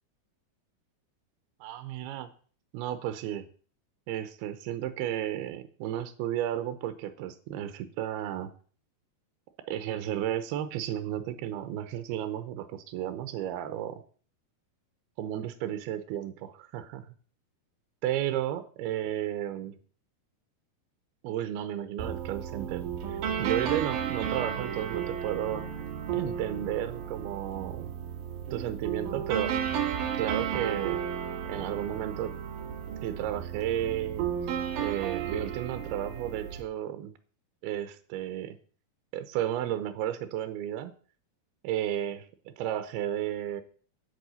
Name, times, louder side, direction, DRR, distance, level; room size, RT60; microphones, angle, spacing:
voice 1, 1.6-2.3 2.7-3.5 4.1-8.5 9.7-14.0 15.2-17.1 18.0-19.8 21.2-25.7 26.1-27.9 28.5-29.6 30.2-31.0 31.5-32.4 33.0-34.2 34.8-37.1 37.6-38.6 39.1-40.9 41.6-43.6, right 11 dB, 85° right, 10 dB, 2.7 m, -33 dB
sound 1, 22.0-36.6, right 8 dB, 65° right, 2.7 m, -33 dB
9.2 x 5.6 x 8.1 m, 0.43 s
omnidirectional pair, 4.6 m